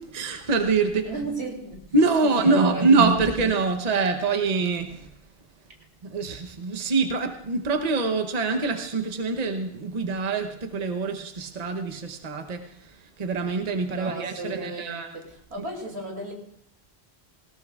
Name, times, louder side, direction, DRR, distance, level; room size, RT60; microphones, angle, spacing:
voice 1, 0.0-1.1 1.9-5.1 6.0-15.1, right 4 dB, 40° right, 6 dB, 1.0 m, -24 dB
voice 2, 1.0-1.8 2.2-3.0 13.9-15.2 15.5-16.3, right 2 dB, 90° right, 0 dB, 3.0 m, -35 dB
18.0 x 18.0 x 2.4 m, 0.70 s
omnidirectional pair, 1.1 m